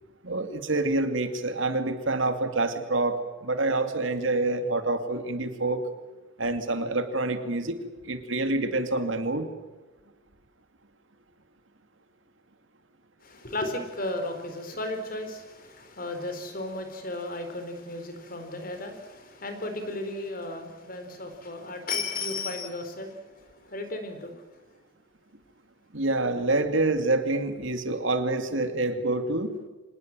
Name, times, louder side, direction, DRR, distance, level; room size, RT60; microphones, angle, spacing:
voice 1, 0.2-5.8 6.4-9.5 25.9-29.6, right 2 dB, 70° right, 8 dB, 2.5 m, -27 dB
voice 2, 13.2-24.4, left 2 dB, 45° left, 7 dB, 4.2 m, -35 dB
26.0 x 19.5 x 7.6 m, 1.2 s
head